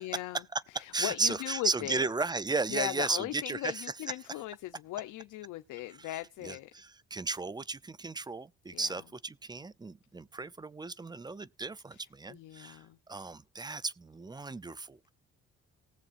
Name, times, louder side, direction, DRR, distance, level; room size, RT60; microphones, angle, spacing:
voice 1, 0.0-0.4 0.7-2.0 2.7-6.7 8.7-9.0 11.9-12.0 12.3-13.0, left 15 dB, 85° left, 0.7 m, -38 dB
voice 2, 0.9-3.8 6.0-6.1 6.4-15.1, right 3 dB, 15° right, 0.5 m, -35 dB
19.5 x 7.1 x 2.5 m
cardioid pair, 90°, 30 cm